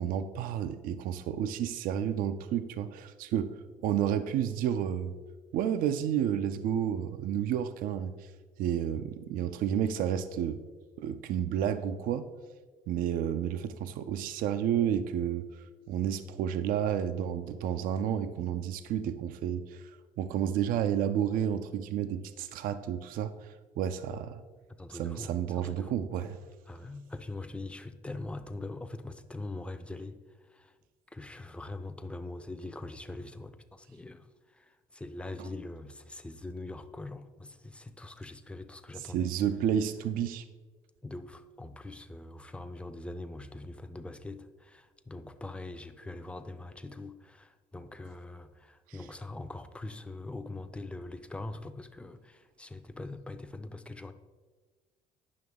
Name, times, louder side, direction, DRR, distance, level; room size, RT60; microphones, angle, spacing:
voice 1, 0.0-3.5 3.8-5.1 5.5-8.3 8.6-10.6 11.0-12.3 12.9-15.5 15.9-19.9 20.2-24.4 24.9-26.4 35.4-35.5 39.0-40.4 48.9-49.0, right 9 dB, 70° right, 11 dB, 0.4 m, -31 dB
voice 2, 24.8-26.0 26.7-30.7 31.1-39.3 41.0-54.1, left 2 dB, 10° left, 9 dB, 0.5 m, -42 dB
9.4 x 5.9 x 3.6 m, 1.4 s
cardioid pair, 105°, 15 cm